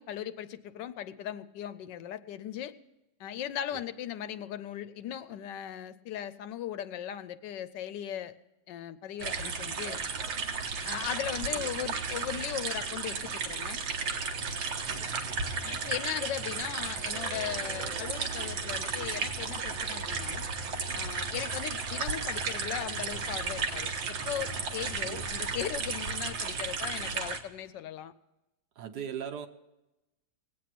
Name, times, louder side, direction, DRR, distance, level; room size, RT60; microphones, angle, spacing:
voice 1, 0.0-2.7 3.2-8.4 8.7-10.0 10.8-13.8 15.6-20.5 20.9-28.1, left 10 dB, 75° left, 13 dB, 1.3 m, -38 dB
sound 1, 9.2-27.4, right 5 dB, 85° right, 1.8 m, -34 dB
voice 2, 28.8-29.5, right 8 dB, 65° right, 8 dB, 1.4 m, -39 dB
19.0 x 8.6 x 5.9 m, 0.96 s
omnidirectional pair, 2.0 m